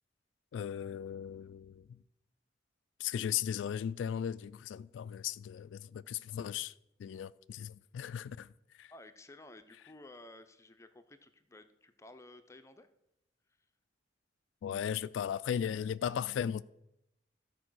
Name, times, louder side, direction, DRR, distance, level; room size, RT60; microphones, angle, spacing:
voice 1, 0.5-2.0 3.0-6.7 7.0-8.5 8.8-8.9 14.6-16.6, left 8 dB, 90° left, 0.3 m, -37 dB
voice 2, 8.9-12.9, left 2 dB, 15° left, 0.6 m, -54 dB
13.0 x 4.7 x 6.2 m
head